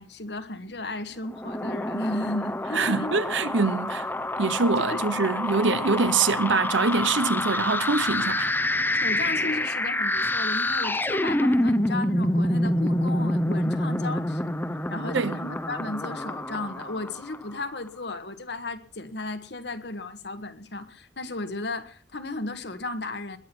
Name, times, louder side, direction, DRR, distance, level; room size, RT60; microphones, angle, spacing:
voice 1, 0.0-3.2 4.9-5.0 8.9-23.4, left 2 dB, 60° left, 1.6 m, -34 dB
sound 1, 1.3-17.6, left 1 dB, 10° left, 0.8 m, -27 dB
voice 2, 2.7-4.1 4.4-8.5 15.1-15.4, right 4 dB, 85° right, 1.0 m, -24 dB
21.5 x 8.7 x 6.2 m
head